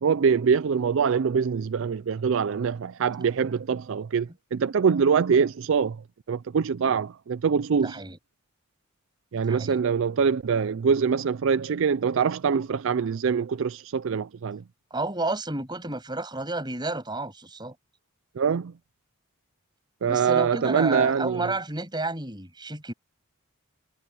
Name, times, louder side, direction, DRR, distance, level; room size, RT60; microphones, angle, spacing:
voice 1, 0.0-6.0 6.3-8.0 9.3-14.6 18.4-18.7 20.0-21.5, right 6 dB, 60° right, 0.4 m, -24 dB
voice 2, 7.8-8.2 9.4-9.8 14.9-17.7 20.1-22.9, right 2 dB, 20° right, 7.6 m, -31 dB
head